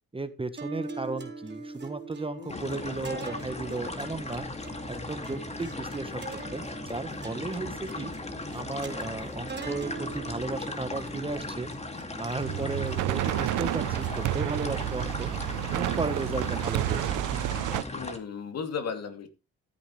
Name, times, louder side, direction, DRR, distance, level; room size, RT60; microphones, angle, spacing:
voice 1, 0.1-4.5 4.9-8.1 8.5-11.7 12.2-15.3 15.7-17.3, right 3 dB, 20° right, 11 dB, 1.3 m, -35 dB
sound 1, 0.6-17.0, right 3 dB, 35° right, 3.8 m, -43 dB
voice 2, 2.4-3.1 17.9-19.3, left 6 dB, 55° left, 7 dB, 2.7 m, -36 dB
sound 2, 2.5-18.2, left 2 dB, 20° left, 2.3 m, -38 dB
sound 3, 12.4-17.8, right 14 dB, 85° right, 0.7 m, -30 dB
14.5 x 9.9 x 3.2 m, 0.29 s
cardioid pair, 90°, 30 cm